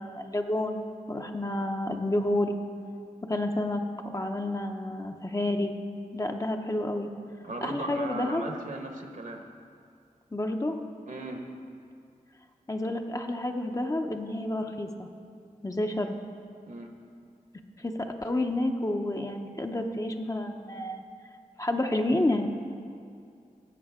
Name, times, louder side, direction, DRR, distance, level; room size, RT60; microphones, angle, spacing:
voice 1, 0.0-2.5 3.3-3.8 4.1-5.7 6.1-7.1 7.6-8.4 10.3-10.8 12.7-15.1 15.6-16.2 17.8-21.0 21.6-22.5, left 1 dB, 20° left, 4 dB, 0.7 m, -29 dB
voice 2, 7.4-9.4 11.1-11.4 16.7-16.9, right 2 dB, 60° right, 3 dB, 1.3 m, -37 dB
16.0 x 7.7 x 3.6 m, 2.3 s
cardioid pair, 55°, 15 cm